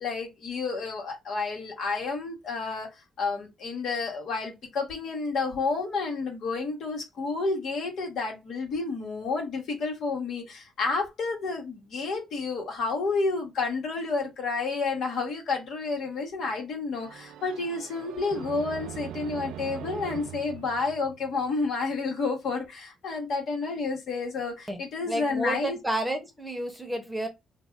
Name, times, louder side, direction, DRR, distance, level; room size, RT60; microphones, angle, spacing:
voice 1, 0.0-25.8, left 4 dB, 70° left, 1.2 m, -30 dB
sound 1, 16.9-21.7, right 10 dB, 90° right, 0.4 m, -41 dB
voice 2, 25.1-27.3, right 1 dB, 5° right, 0.9 m, -30 dB
2.6 x 2.2 x 3.3 m
cardioid pair, 90°, 0 cm